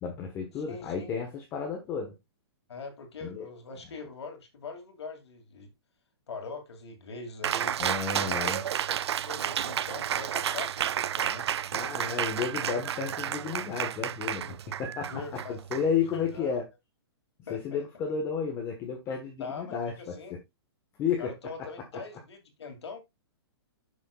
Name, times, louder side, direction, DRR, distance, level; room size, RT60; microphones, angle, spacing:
voice 1, 0.0-2.1 3.2-3.5 7.8-8.6 11.7-16.6 17.5-20.4 21.0-21.7, left 6 dB, 20° left, 1.2 m, -32 dB
voice 2, 0.6-1.1 2.7-5.7 6.3-7.8 8.2-8.5 9.0-11.5 15.1-15.6 16.1-16.5 17.5-17.8 19.4-20.3 21.2-23.0, left 4 dB, 85° left, 2.4 m, -42 dB
Cheering, 7.4-16.4, right 9 dB, 80° right, 0.5 m, -31 dB
9.8 x 6.4 x 2.3 m
hypercardioid pair, 160°, 14 cm